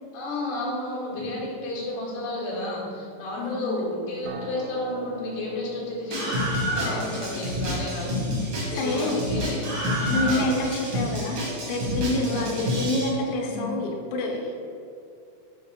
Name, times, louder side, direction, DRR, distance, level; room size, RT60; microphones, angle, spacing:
voice 1, 0.1-6.4 6.7-9.7 10.0-10.2 12.1-12.6 13.5-13.7, left 1 dB, 65° left, -6 dB, 3.6 m, -32 dB
voice 2, 3.4-3.8 6.8-7.0 8.2-8.4 8.7-9.2 10.1-11.4 11.7-14.7, left 2 dB, 85° left, 0 dB, 2.4 m, -28 dB
Acoustic guitar, 4.3-9.5, right 4 dB, 80° right, 2.8 m, -44 dB
Screaming, 6.1-13.1, equal, 65° right, 1.6 m, -28 dB
7.8 x 2.9 x 5.7 m, 2.5 s
omnidirectional pair, 5.2 m